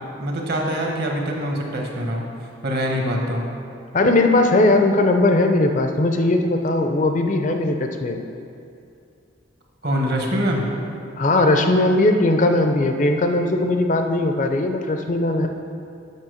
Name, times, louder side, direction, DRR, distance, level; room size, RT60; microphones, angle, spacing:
voice 1, 0.2-2.2 2.6-3.5 9.8-10.6, equal, 50° right, 0 dB, 1.2 m, -24 dB
voice 2, 3.9-8.2 11.2-15.5, left 2 dB, 40° left, 5 dB, 0.5 m, -19 dB
7.4 x 6.1 x 6.3 m, 2.5 s
head